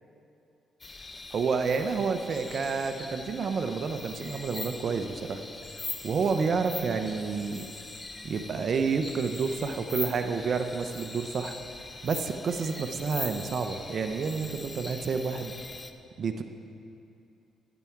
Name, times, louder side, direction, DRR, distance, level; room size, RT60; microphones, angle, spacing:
sound 1, 0.8-15.9, left 3 dB, 25° left, 0.6 m, -41 dB
voice 1, 1.3-5.4 5.8-7.6 8.2-11.6 12.0-15.5 16.2-16.4, right 5 dB, 55° right, 7 dB, 0.7 m, -29 dB
11.0 x 10.5 x 4.6 m, 2.7 s
cardioid pair, 90°, 0 cm